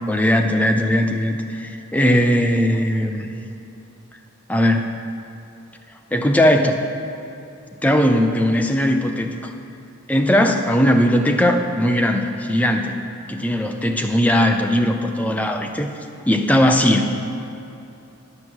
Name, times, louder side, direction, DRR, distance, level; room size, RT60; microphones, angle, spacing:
voice 1, 0.1-3.3 4.5-4.9 6.1-6.9 7.8-9.5 10.1-13.0 13.3-15.9 16.3-17.2, equal, 5° left, 4 dB, 0.4 m, -18 dB
9.8 x 5.9 x 7.8 m, 2.8 s
head